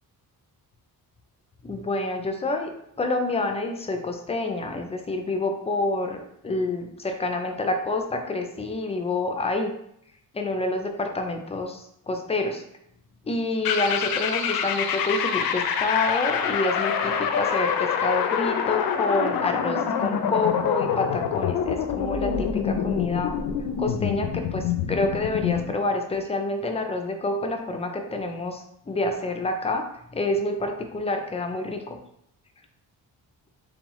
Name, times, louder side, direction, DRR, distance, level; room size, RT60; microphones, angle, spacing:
voice 1, 1.6-2.7 3.0-9.7 10.3-12.6 13.3-23.4 23.8-29.9 30.1-32.0, left 2 dB, 15° left, 5 dB, 0.4 m, -28 dB
sound 1, 13.6-25.7, left 7 dB, 70° left, 0.5 m, -26 dB
3.8 x 3.3 x 3.0 m, 0.73 s
cardioid pair, 150°, 37 cm